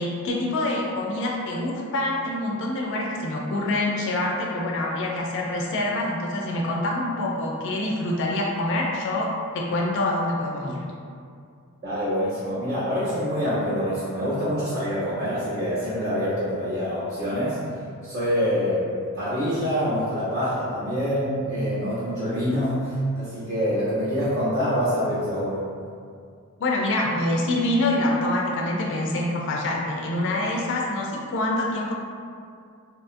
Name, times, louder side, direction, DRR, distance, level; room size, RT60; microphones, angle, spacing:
voice 1, 0.0-10.8 26.6-31.9, left 1 dB, 55° left, -1 dB, 0.3 m, -26 dB
voice 2, 11.8-17.6 18.0-18.9 19.1-25.6, equal, 50° right, -13 dB, 0.7 m, -25 dB
2.8 x 2.3 x 2.5 m, 2.3 s
head